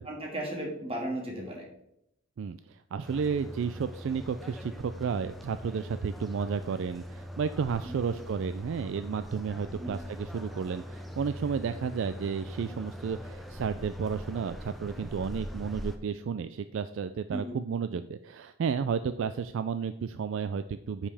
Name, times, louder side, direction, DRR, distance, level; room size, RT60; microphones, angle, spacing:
voice 1, 0.1-1.7 7.9-8.1 9.7-9.9 17.3-17.6, right 1 dB, 25° right, -1 dB, 1.9 m, -36 dB
voice 2, 2.4-21.1, right 6 dB, 60° right, 11 dB, 0.3 m, -32 dB
sound 1, 3.0-16.0, equal, ahead, 0.5 m, -42 dB
9.6 x 5.4 x 3.4 m, 0.80 s
head